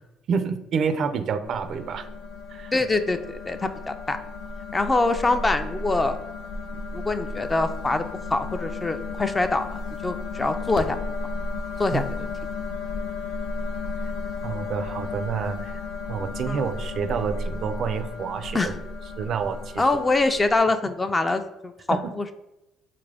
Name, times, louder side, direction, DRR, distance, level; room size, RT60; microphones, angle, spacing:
voice 1, 0.3-2.1 2.5-2.7 11.9-12.0 14.4-15.8 16.1-18.7 19.2-19.8 21.9-22.1, right 6 dB, 55° right, 9 dB, 0.4 m, -28 dB
sound 1, 1.4-20.6, left 3 dB, 85° left, 0.4 m, -34 dB
voice 2, 2.7-4.2 4.7-6.2 6.9-8.0 8.3-11.0 11.8-12.3 16.5-16.7 18.5-18.8 19.8-22.3, left 3 dB, 20° left, 9 dB, 0.3 m, -24 dB
3.7 x 2.4 x 3.3 m, 0.96 s
cardioid pair, 90°, 0 cm